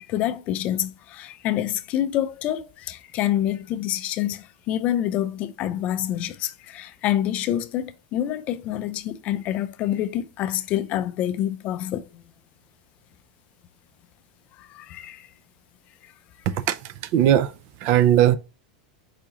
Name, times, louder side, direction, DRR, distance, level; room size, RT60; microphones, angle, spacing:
voice 1, 0.0-12.2 14.6-15.3, left 12 dB, 35° left, 0.3 m, -27 dB
voice 2, 16.5-17.5 17.8-18.4, right 11 dB, 45° right, 0.3 m, -19 dB
4.9 x 3.6 x 2.8 m
supercardioid pair, 155°, 4 cm